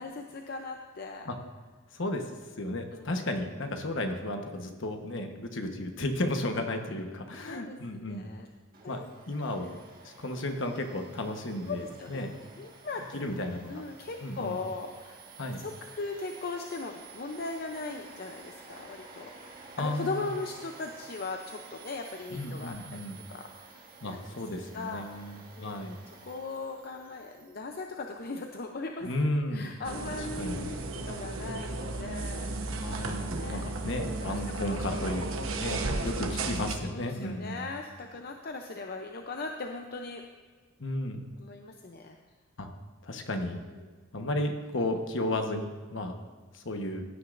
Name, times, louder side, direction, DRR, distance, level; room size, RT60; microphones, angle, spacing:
voice 1, 0.0-1.3 2.9-3.3 7.5-8.5 8.8-9.1 9.6-9.8 11.7-13.2 13.7-24.3 24.7-29.1 29.5-30.8 31.1-32.5 33.3-33.6 34.3-35.2 35.6-36.1 36.9-40.2 41.4-42.2 43.6-43.9, left 3 dB, 50° left, 3 dB, 0.6 m, -39 dB
voice 2, 1.9-2.3 2.6-8.3 8.9-9.0 9.3-9.7 10.0-12.3 13.1-13.8 14.2-14.6 15.4-15.6 19.8-20.2 22.3-23.2 24.0-26.0 29.0-29.7 30.4-30.7 32.8-37.7 40.8-41.2 42.6-42.7 43.0-43.6 44.1-46.1 46.5-47.0, left 1 dB, 65° left, 5 dB, 1.2 m, -33 dB
Domestic sounds home sounds, 8.7-27.6, right 4 dB, 45° right, 1.7 m, -51 dB
sound 1, 29.8-36.7, right 2 dB, 85° right, 1.1 m, -34 dB
16.0 x 9.7 x 2.6 m, 1.5 s
head